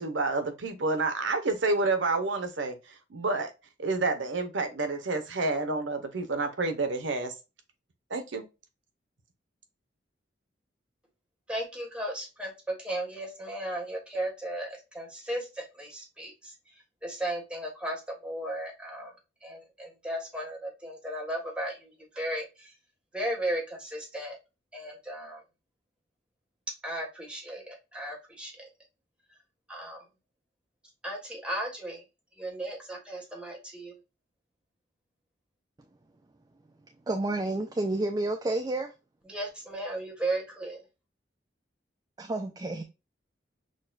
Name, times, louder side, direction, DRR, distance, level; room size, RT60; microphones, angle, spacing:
voice 1, 0.0-3.5 3.8-7.3 8.1-8.4, right 3 dB, 80° right, 0.8 m, -29 dB
voice 2, 11.5-16.5 17.0-19.1 19.4-22.7 23.1-24.4 24.7-25.4 26.8-28.7 29.7-30.0 31.0-32.0 32.4-33.9 39.3-40.8, right 1 dB, 5° right, 1.3 m, -35 dB
voice 3, 37.1-38.9 42.2-42.8, right 2 dB, 20° right, 0.4 m, -30 dB
6.3 x 2.2 x 2.4 m
head